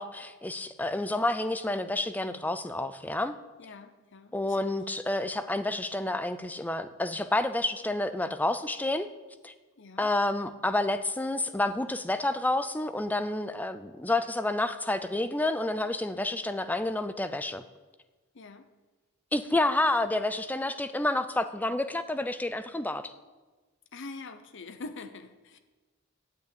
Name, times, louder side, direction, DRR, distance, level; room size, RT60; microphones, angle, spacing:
voice 1, 0.0-3.4 4.3-9.1 9.4-9.5 10.0-17.6 19.3-23.1, left 2 dB, 10° left, 11 dB, 0.4 m, -29 dB
voice 2, 3.6-4.8 9.8-10.1 18.3-18.7 23.9-25.6, left 3 dB, 60° left, 8 dB, 0.8 m, -44 dB
9.4 x 8.2 x 8.6 m, 1.3 s
head